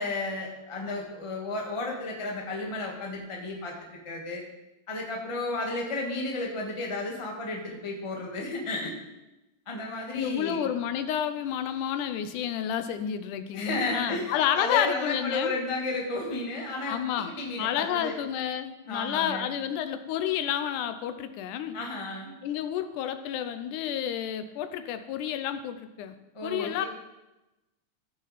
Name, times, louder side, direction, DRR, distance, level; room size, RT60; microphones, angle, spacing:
voice 1, 0.0-3.7 4.0-4.4 4.9-8.9 9.7-10.7 13.5-18.2 18.9-19.5 21.7-22.3 26.3-26.8, left 2 dB, 30° left, -1 dB, 0.6 m, -33 dB
voice 2, 10.1-15.5 16.9-17.3 17.6-21.8 22.4-26.2 26.4-26.9, left 10 dB, 85° left, 10 dB, 2.1 m, -30 dB
14.0 x 6.1 x 4.2 m, 0.99 s
omnidirectional pair, 3.6 m